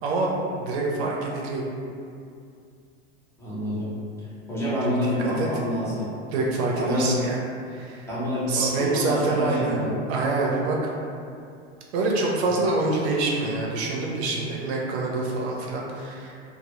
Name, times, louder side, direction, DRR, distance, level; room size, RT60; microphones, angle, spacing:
voice 1, 0.0-1.6 4.8-5.5 6.3-7.4 7.7-8.1 8.5-9.8 10.1-10.9 11.9-16.3, right 3 dB, 80° right, -3 dB, 0.6 m, -26 dB
voice 2, 3.4-4.0 4.5-6.1 6.7-7.1 8.1-9.9, left 1 dB, 10° left, -10 dB, 0.6 m, -27 dB
2.1 x 2.0 x 2.9 m, 2.4 s
supercardioid pair, 115°, 33 cm